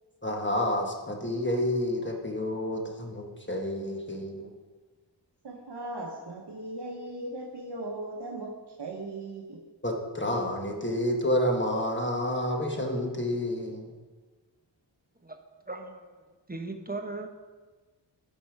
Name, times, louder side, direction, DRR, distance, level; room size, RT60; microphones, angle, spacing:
voice 1, 0.2-4.5 9.8-13.9, left 1 dB, 25° left, 1 dB, 1.2 m, -29 dB
voice 2, 5.4-9.6, right 2 dB, 60° right, 0 dB, 1.0 m, -38 dB
voice 3, 15.7-16.1 16.5-17.3, right 3 dB, 20° right, 5 dB, 0.8 m, -37 dB
10.0 x 5.5 x 4.6 m, 1.3 s
wide cardioid pair, 50°, 45 cm